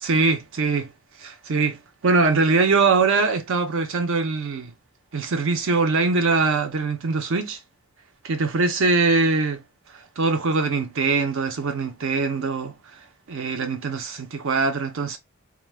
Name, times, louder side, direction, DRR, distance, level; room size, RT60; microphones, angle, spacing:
voice 1, 0.0-0.9 1.2-1.8 2.0-4.7 5.1-7.6 8.2-9.6 10.2-12.7 13.3-15.2, right 4 dB, 65° right, 0.6 m, -22 dB
2.3 x 2.2 x 3.2 m
head